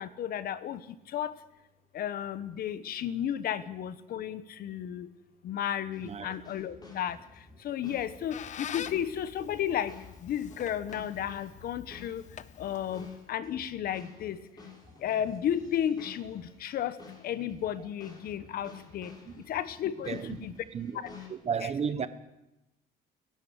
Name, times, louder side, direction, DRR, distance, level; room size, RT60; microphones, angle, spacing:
voice 1, 0.0-1.3 1.9-5.1 5.4-7.2 7.6-9.9 10.2-12.2 12.6-14.4 15.0-17.0 17.2-19.1 19.5-20.5 21.6-21.7, left 10 dB, 65° left, 1.2 m, -33 dB
sound 1, 5.9-21.3, left 5 dB, 25° left, 5.9 m, -52 dB
Squeak, 7.8-13.3, left 9 dB, 45° left, 0.8 m, -45 dB
voice 2, 20.1-21.0 21.3-22.1, right 7 dB, 40° right, 1.3 m, -34 dB
30.0 x 11.0 x 8.1 m
cardioid pair, 110°, 17 cm